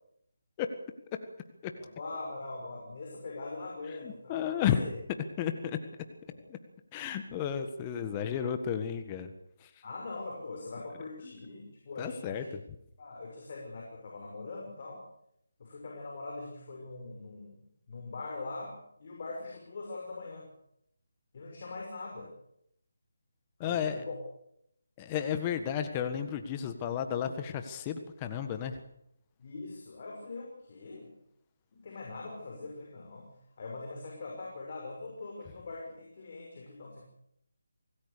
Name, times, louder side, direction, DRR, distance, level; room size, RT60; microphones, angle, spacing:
voice 1, 1.8-4.9 6.3-6.4 9.8-12.5 13.0-15.0 15.6-20.5 21.3-22.3 23.6-24.1 29.4-31.1 31.7-37.0, left 3 dB, 45° left, 0 dB, 6.1 m, -42 dB
voice 2, 3.9-4.9 5.4-5.8 6.5-6.6 6.9-9.3 9.6-9.8 11.2-11.3 12.0-12.6 23.6-24.0 25.0-28.8, left 8 dB, 20° left, 8 dB, 1.6 m, -33 dB
26.0 x 18.5 x 6.9 m, 0.75 s
figure-of-eight pair, 155°, 0 cm